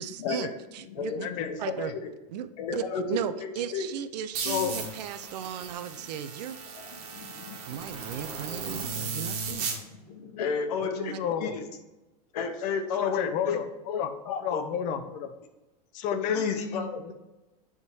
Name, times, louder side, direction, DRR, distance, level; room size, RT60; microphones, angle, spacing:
voice 1, 0.0-0.5 0.7-1.3 1.6-1.9 2.3-6.6 7.7-9.7 10.8-11.2, right 9 dB, 80° right, 11 dB, 0.5 m, -36 dB
voice 2, 1.0-2.1 2.6-3.0 3.4-3.9 6.7-7.6 9.8-11.6 12.3-13.6 13.9-14.6 16.3-17.0, left 5 dB, 70° left, 5 dB, 1.0 m, -33 dB
sound 1, 4.3-9.8, right 5 dB, 60° right, 1.7 m, -36 dB
voice 3, 11.2-11.5 13.0-13.7 14.0-15.3 15.9-17.1, left 8 dB, 40° left, 9 dB, 0.7 m, -31 dB
8.0 x 3.7 x 4.5 m, 1.1 s
supercardioid pair, 150°, 21 cm